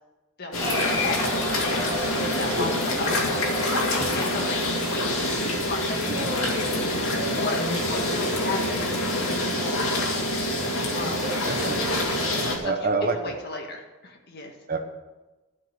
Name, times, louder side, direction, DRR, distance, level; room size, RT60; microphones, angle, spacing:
voice 1, 0.4-1.9 2.2-3.3 4.1-5.1 5.4-6.9 7.3-7.6 7.9-9.4 11.0-11.3 12.3-12.7 13.2-14.5, left 3 dB, 50° left, 2 dB, 1.9 m, -35 dB
sound 1, 0.5-12.6, left 1 dB, 80° left, 2.5 m, -26 dB
Cheering, 0.6-5.4, left 1 dB, 20° left, 3.7 m, -33 dB
voice 2, 11.5-13.3 14.7-14.8, right 3 dB, 45° right, 5 dB, 1.2 m, -28 dB
12.5 x 5.9 x 8.0 m, 1.1 s
head